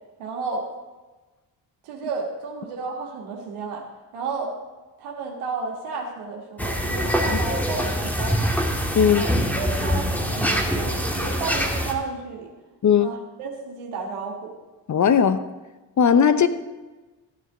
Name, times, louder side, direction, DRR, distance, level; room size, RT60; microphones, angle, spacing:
voice 1, 0.2-0.7 1.8-4.6 5.0-8.6 9.1-9.3 9.5-12.5 13.0-14.5, right 4 dB, 75° right, 0 dB, 1.6 m, -32 dB
sound 1, 6.6-11.9, equal, 5° left, 1.7 m, -24 dB
voice 2, 9.0-9.3 12.8-13.1 14.9-15.4 16.0-16.5, left 7 dB, 35° left, 13 dB, 0.8 m, -18 dB
13.5 x 9.2 x 3.6 m, 1.2 s
hypercardioid pair, 50°, 49 cm